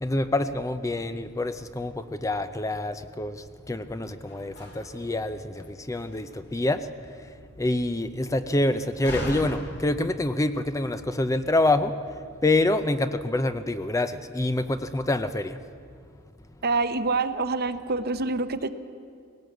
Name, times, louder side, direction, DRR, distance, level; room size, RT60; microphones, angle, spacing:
voice 1, 0.0-6.9 7.6-11.9 12.4-15.6, left 2 dB, 15° left, 10 dB, 0.6 m, -26 dB
Slam, 3.6-11.2, left 1 dB, 55° left, 3.0 m, -42 dB
voice 2, 16.6-18.7, right 3 dB, 50° right, 11 dB, 0.8 m, -26 dB
19.5 x 17.5 x 7.9 m, 2.3 s
head